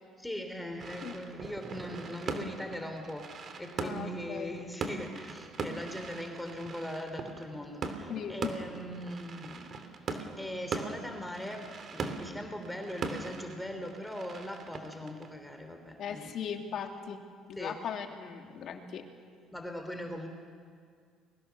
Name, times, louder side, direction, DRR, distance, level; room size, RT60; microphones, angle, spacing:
voice 1, 0.2-9.7 10.4-16.3 17.6-17.7 19.5-20.3, equal, 5° left, 5 dB, 3.1 m, -40 dB
sound 1, 0.8-16.1, right 4 dB, 45° right, 2.8 m, -41 dB
voice 2, 3.8-4.5 8.1-8.6 16.0-17.2 17.5-19.1, left 7 dB, 60° left, 3 dB, 3.0 m, -38 dB
30.0 x 22.5 x 7.0 m, 2.1 s
cardioid pair, 100°, 0 cm